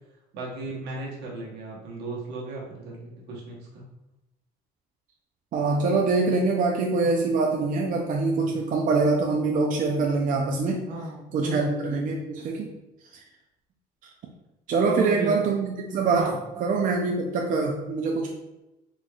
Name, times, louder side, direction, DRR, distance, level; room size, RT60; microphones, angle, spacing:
voice 1, 0.3-3.8 8.4-8.5 10.9-11.7 14.9-15.4 16.1-16.4, right 2 dB, 85° right, -3 dB, 1.2 m, -35 dB
voice 2, 5.5-10.8 11.3-12.7 13.1-13.2 14.7-16.3 16.6-18.3, right 3 dB, 50° right, 0 dB, 0.5 m, -24 dB
4.0 x 3.1 x 2.4 m, 0.95 s
cardioid pair, 110°, 17 cm